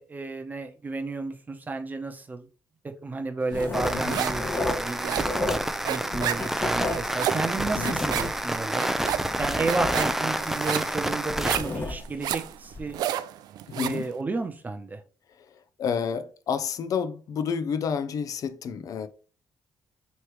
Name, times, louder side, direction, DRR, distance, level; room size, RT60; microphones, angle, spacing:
voice 1, 0.0-2.5 3.0-5.2 5.9-8.8 9.4-13.0 13.8-15.0, right 3 dB, 25° right, 0.8 m, -32 dB
Writing, 3.5-5.8 6.1-8.6 9.0-12.3 12.7-12.9, left 2 dB, 25° left, 0.9 m, -33 dB
sound 1, 3.6-4.5 4.7-14.1, right 11 dB, 80° right, 0.3 m, -32 dB
sound 2, 3.7-11.6, right 1 dB, 5° right, 0.4 m, -29 dB
voice 2, 13.7-14.1 15.3-19.1, left 6 dB, 60° left, 0.5 m, -30 dB
3.2 x 3.1 x 4.6 m
cardioid pair, 95°, 7 cm